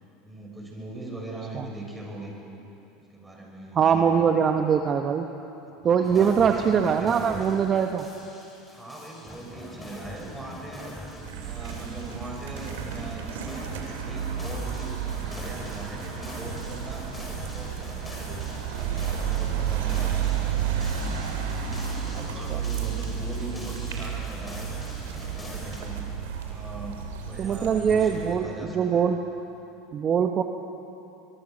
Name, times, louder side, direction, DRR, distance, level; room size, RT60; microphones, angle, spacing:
voice 1, 0.2-2.4 3.0-4.2 5.8-7.5 8.7-11.0 11.4-17.1 17.5-18.5 19.1-20.2 22.1-24.6 25.3-26.1 26.4-29.1, right 2 dB, 10° right, -1 dB, 6.6 m, -40 dB
voice 2, 3.8-5.3 5.8-8.1 22.1-22.6 27.4-29.2 29.9-30.4, right 7 dB, 35° right, 5 dB, 1.2 m, -23 dB
sound 1, 6.0-25.8, left 1 dB, 15° left, 6.2 m, -42 dB
sound 2, 11.2-28.3, right 8 dB, 85° right, 3.2 m, -32 dB
23.5 x 22.5 x 6.5 m, 2.9 s
supercardioid pair, 100°, 0 cm